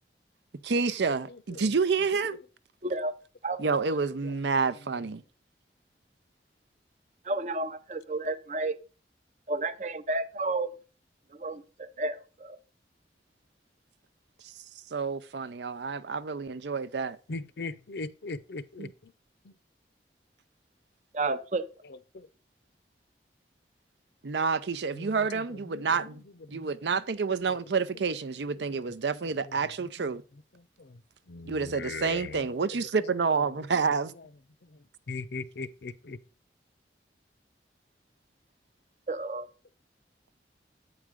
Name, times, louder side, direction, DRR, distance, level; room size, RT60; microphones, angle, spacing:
voice 1, 0.6-2.4 3.6-5.2 14.9-17.2 18.8-18.9 24.2-26.2 26.5-30.2 31.5-34.1, right 5 dB, 85° right, 0.6 m, -29 dB
voice 2, 1.3-1.7 4.2-4.7 17.3-19.1 19.4-19.5 22.1-22.3 24.9-26.1 26.5-26.7 27.4-27.8 28.7-28.8 29.4-30.2 30.5-31.0 31.3-32.5 33.0-33.6 34.2-34.3 34.7-34.8 35.1-36.2, left 3 dB, 75° left, 0.6 m, -41 dB
voice 3, 2.8-3.1 3.4-3.7 7.2-8.8 9.5-10.8 11.3-12.6 21.1-21.6 39.1-39.5, right 2 dB, 40° right, 0.6 m, -31 dB
8.5 x 4.9 x 5.0 m
head